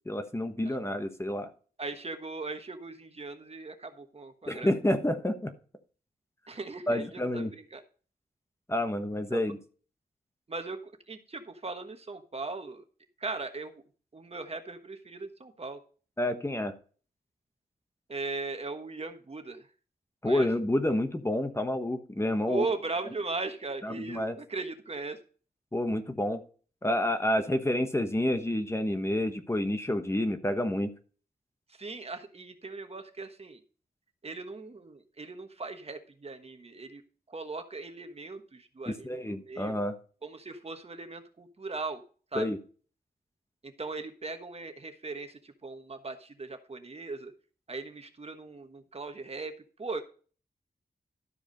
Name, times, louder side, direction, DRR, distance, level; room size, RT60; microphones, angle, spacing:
voice 1, 0.1-1.5 4.5-5.5 6.9-7.5 8.7-9.6 16.2-16.7 20.2-22.7 23.8-24.3 25.7-26.4 26.8-30.9 38.9-39.9 42.3-42.6, left 1 dB, 15° left, 7 dB, 1.1 m, -29 dB
voice 2, 1.8-4.7 6.5-7.8 9.3-9.4 10.5-12.8 13.2-13.8 14.1-15.8 18.1-19.7 20.2-20.5 22.5-25.2 31.7-33.6 34.2-37.0 37.3-39.8 40.2-42.0 42.3-42.5 43.6-47.3 47.7-49.5 49.8-50.0, right 3 dB, 40° right, 7 dB, 1.3 m, -38 dB
12.5 x 4.8 x 5.2 m, 0.39 s
wide cardioid pair, 85°, 16 cm